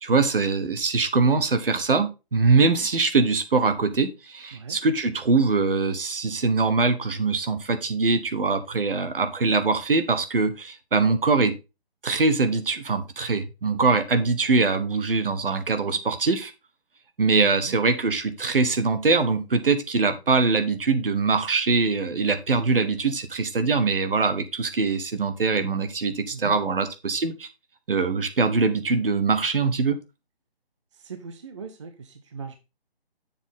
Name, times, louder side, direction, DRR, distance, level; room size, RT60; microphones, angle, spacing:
voice 1, 0.0-11.5 12.0-16.5 17.2-27.5 27.9-30.0, right 4 dB, 60° right, 1.3 m, -23 dB
voice 2, 30.9-32.6, right 5 dB, 30° right, 0.6 m, -39 dB
7.2 x 6.2 x 3.7 m
figure-of-eight pair, 150°, 31 cm